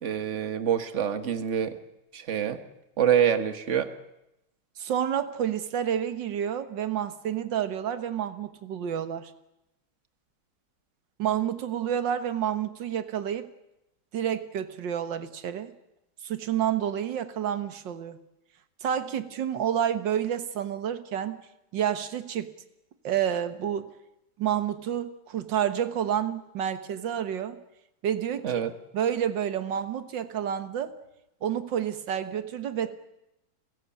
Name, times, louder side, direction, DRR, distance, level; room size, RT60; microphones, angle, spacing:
voice 1, 0.0-1.7 2.1-2.6 3.0-3.9 28.4-28.7, right 9 dB, 40° right, 10 dB, 1.5 m, -26 dB
voice 2, 4.8-9.3 11.2-13.5 14.1-15.7 16.2-18.2 18.8-21.4 21.7-22.5 23.0-23.9 24.4-27.6 28.0-28.5 28.9-30.9 31.4-32.9, right 9 dB, 65° right, 11 dB, 1.9 m, -29 dB
29.5 x 16.0 x 8.5 m, 0.91 s
omnidirectional pair, 2.2 m